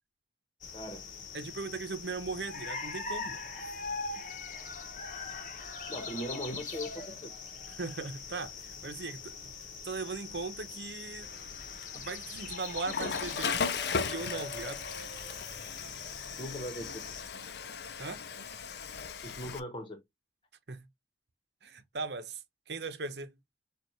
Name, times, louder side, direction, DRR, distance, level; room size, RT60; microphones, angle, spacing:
sound 1, 0.6-17.2, left 4 dB, 45° left, 0.9 m, -42 dB
voice 1, 0.7-1.1 5.9-7.3 11.9-12.0 16.4-17.2 19.2-20.0, equal, 30° left, 1.2 m, -40 dB
voice 2, 1.3-3.4 7.7-9.4 9.8-11.3 11.9-13.6 14.0-14.8 18.0-18.2 20.7-20.8 21.6-22.4 22.7-23.3, right 4 dB, 75° right, 0.9 m, -38 dB
Water / Toilet flush, 11.2-19.6, left 5 dB, 70° left, 0.6 m, -38 dB
6.8 x 2.5 x 3.2 m
head